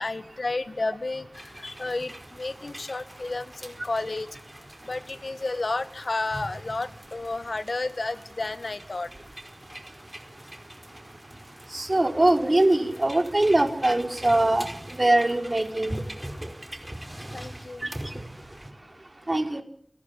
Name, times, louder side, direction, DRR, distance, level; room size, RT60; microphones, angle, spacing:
voice 1, 0.0-4.3 4.8-9.1 10.9-11.0 17.3-17.8, left 2 dB, 70° left, 12 dB, 1.8 m, -31 dB
sound 1, 1.3-18.7, right 1 dB, 15° right, 5.0 m, -42 dB
voice 2, 11.7-15.9 17.8-18.2 19.3-19.6, right 1 dB, 40° right, 5 dB, 4.8 m, -22 dB
28.5 x 20.0 x 8.5 m, 0.62 s
wide cardioid pair, 45°, 0 cm